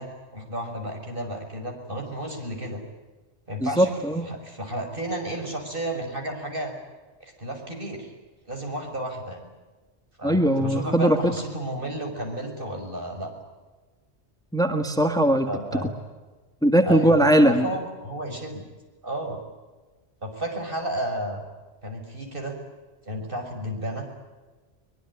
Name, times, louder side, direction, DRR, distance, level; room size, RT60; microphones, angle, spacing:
voice 1, 0.0-2.8 3.5-6.7 7.2-8.1 8.5-9.4 10.2-13.3 15.4-15.9 16.8-18.6 19.0-19.4 20.2-21.4 21.8-22.6 23.0-24.1, right 1 dB, 55° right, 3 dB, 6.4 m, -32 dB
voice 2, 3.6-4.2 10.2-11.2 14.5-15.5 16.6-17.7, right 1 dB, 5° left, 6 dB, 1.8 m, -20 dB
23.5 x 22.5 x 9.9 m, 1.2 s
omnidirectional pair, 1.1 m